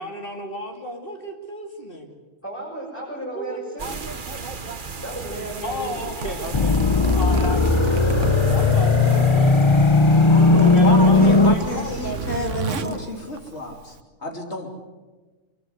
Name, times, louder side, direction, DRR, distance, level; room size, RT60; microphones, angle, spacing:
voice 1, 0.0-2.1 3.3-3.6 5.6-9.6 10.4-13.1, equal, 45° left, 3 dB, 2.7 m, -33 dB
voice 2, 2.4-4.0 5.0-6.0, right 1 dB, 10° left, -6 dB, 6.6 m, -34 dB
sound 1, 3.8-12.5, right 4 dB, 45° right, 1.4 m, -35 dB
Zipper (clothing), 6.0-14.0, right 5 dB, 80° right, 1.5 m, -33 dB
sound 2, 6.5-11.5, left 3 dB, 25° left, 0.9 m, -16 dB
voice 3, 10.3-14.0 14.2-14.7, left 1 dB, 65° left, 3 dB, 3.5 m, -30 dB
23.5 x 23.0 x 8.0 m, 1.3 s
omnidirectional pair, 1.3 m